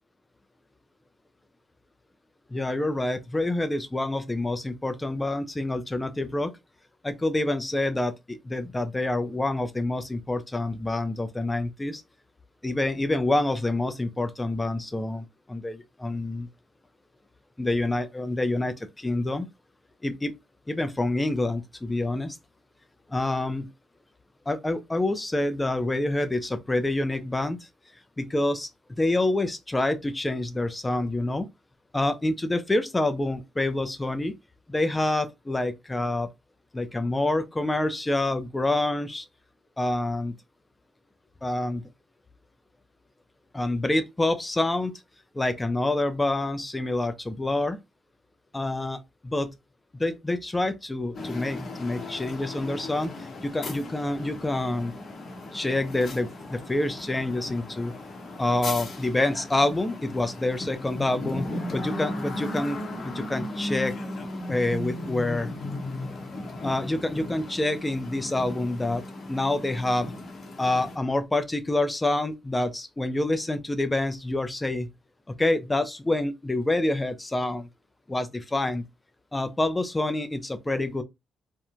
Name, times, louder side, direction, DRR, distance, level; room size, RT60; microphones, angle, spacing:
voice 1, 2.5-6.5 7.0-12.0 12.6-16.5 17.6-19.5 20.0-20.3 20.7-22.4 23.1-23.7 24.5-27.6 28.2-28.7 29.0-31.5 31.9-34.3 34.7-36.3 36.7-39.3 39.8-40.3 41.4-41.8 43.5-44.9 45.3-47.8 48.5-49.5 49.9-53.1 53.4-54.9 55.5-57.9 58.4-63.9 64.2-65.5 66.6-69.0 69.3-70.1 70.6-74.9 75.3-77.7 78.1-78.8 79.3-81.0, left 2 dB, 15° left, 0.4 m, -27 dB
sound 1, 51.1-71.0, left 2 dB, 50° left, 0.8 m, -36 dB
3.0 x 2.1 x 2.4 m
cardioid pair, 90°, 0 cm